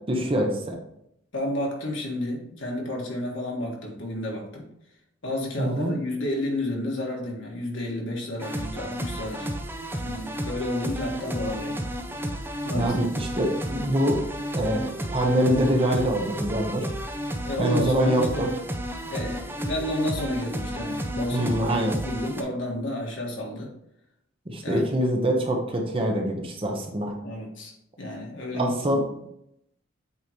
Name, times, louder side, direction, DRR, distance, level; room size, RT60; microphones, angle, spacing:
voice 1, 0.1-0.8 5.6-5.9 12.7-14.2 14.5-16.8 17.6-18.5 21.3-22.0 24.5-27.1 28.5-29.0, right 1 dB, 30° right, 2 dB, 0.9 m, -24 dB
voice 2, 1.3-4.7 5.2-9.5 10.0-11.8 12.6-13.0 17.4-18.5 19.1-23.7 24.6-24.8 27.2-27.7 28.0-28.8, left 1 dB, 70° left, -1 dB, 1.8 m, -31 dB
sound 1, 8.4-22.4, equal, 10° right, 0.5 m, -32 dB
8.2 x 3.8 x 3.1 m, 0.77 s
head